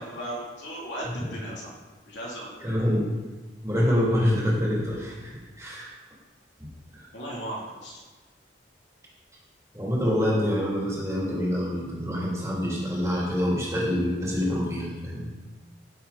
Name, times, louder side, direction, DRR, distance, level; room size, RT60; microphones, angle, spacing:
voice 1, 0.0-1.7 2.1-2.6 7.1-8.0, right 1 dB, 75° left, -3 dB, 3.1 m, -36 dB
voice 2, 2.6-3.1 3.6-5.9 9.7-15.3, equal, 15° right, -5 dB, 3.1 m, -26 dB
15.5 x 7.4 x 4.2 m, 1.3 s
head